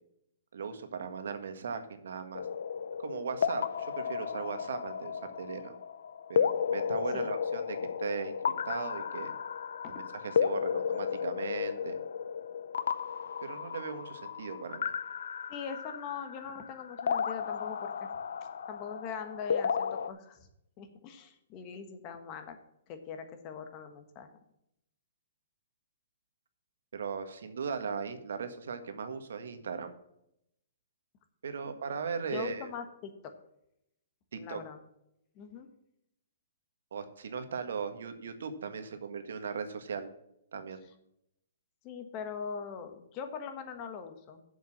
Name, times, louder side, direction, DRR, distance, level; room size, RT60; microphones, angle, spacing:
voice 1, 0.5-2.5 3.0-5.7 6.3-8.4 8.6-9.3 9.9-12.0 13.4-14.9 26.9-29.9 31.4-32.7 34.3-34.6 36.9-40.1 40.5-40.8, right 6 dB, 75° right, 8 dB, 1.6 m, -38 dB
sound 1, 2.3-20.1, left 7 dB, 75° left, 0.6 m, -34 dB
voice 2, 15.5-17.9 18.7-20.5 20.8-22.6 22.9-24.3 31.6-31.7 32.3-33.3 34.4-34.8 35.3-35.7 41.8-44.4, left 6 dB, 25° left, 7 dB, 1.3 m, -41 dB
7.7 x 7.2 x 7.4 m, 0.79 s
hypercardioid pair, 165°, 0 cm